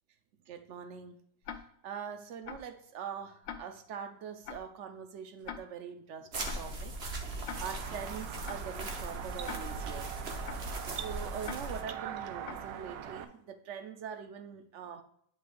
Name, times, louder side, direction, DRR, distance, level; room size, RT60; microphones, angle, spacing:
voice 1, 0.5-1.1 1.8-6.9 7.2-10.1 10.6-15.0, right 7 dB, 65° right, 0.7 m, -43 dB
Tick-tock, 1.4-1.6 2.4-2.6 3.4-3.6 4.4-4.6 5.4-5.6 6.4-6.6 7.4-7.6 8.4-8.6 9.4-9.6 10.4-10.6 11.4-11.6 12.4-12.6, left 8 dB, 90° left, 1.4 m, -41 dB
sound 1, 6.3-11.8, right 2 dB, 45° right, 1.1 m, -39 dB
sound 2, 7.5-13.2, right 9 dB, 90° right, 1.3 m, -42 dB
9.8 x 5.6 x 2.5 m
omnidirectional pair, 1.9 m